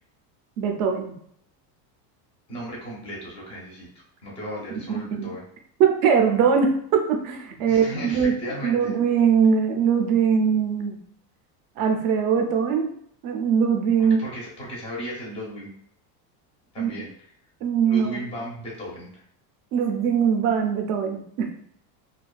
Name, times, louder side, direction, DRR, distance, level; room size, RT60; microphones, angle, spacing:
voice 1, 0.6-1.1 5.2-5.3 5.8-8.3 8.6-11.0 11.8-12.9 13.2-14.2 16.8-16.9 17.6-18.2 19.7-21.5, right 7 dB, 45° right, 4 dB, 0.4 m, -21 dB
voice 2, 2.5-5.4 7.6-8.9 14.2-15.7 16.7-17.3 17.9-19.2, equal, 15° left, -4 dB, 0.4 m, -35 dB
2.5 x 2.2 x 2.2 m, 0.67 s
supercardioid pair, 150°, 49 cm